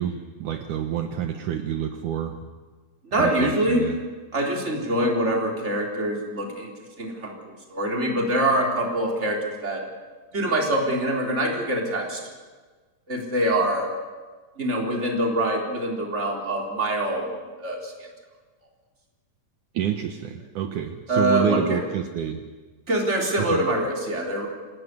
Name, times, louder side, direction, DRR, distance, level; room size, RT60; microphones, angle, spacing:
voice 1, 0.0-2.4 3.1-4.0 19.7-22.4 23.4-23.7, right 9 dB, 70° right, 6 dB, 2.5 m, -28 dB
voice 2, 3.0-3.9 4.3-6.7 7.0-9.8 10.3-12.2 13.1-13.9 14.6-17.9 21.1-21.8 22.9-24.5, right 1 dB, 20° right, 0 dB, 4.0 m, -24 dB
27.0 x 17.5 x 9.7 m, 1.4 s
omnidirectional pair, 4.0 m